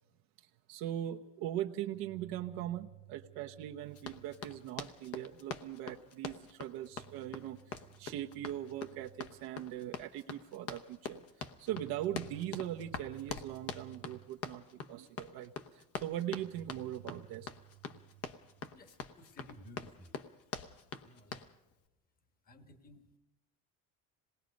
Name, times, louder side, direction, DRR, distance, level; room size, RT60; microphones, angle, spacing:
voice 1, 0.7-17.5, right 12 dB, 75° right, 3 dB, 1.1 m, -40 dB
Run, 3.9-21.5, left 6 dB, 40° left, 1.0 m, -45 dB
voice 2, 18.7-20.1 21.0-21.4 22.4-23.2, left 1 dB, 25° left, 9 dB, 1.4 m, -56 dB
26.5 x 20.0 x 5.3 m, 0.97 s
cardioid pair, 140°, 36 cm